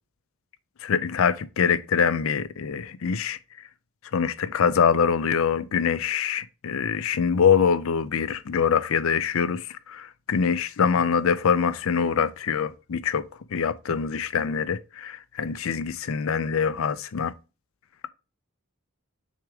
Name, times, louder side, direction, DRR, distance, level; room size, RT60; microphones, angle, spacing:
voice 1, 0.8-3.4 4.1-17.3, left 6 dB, 70° left, 0.5 m, -24 dB
6.4 x 3.5 x 4.9 m
head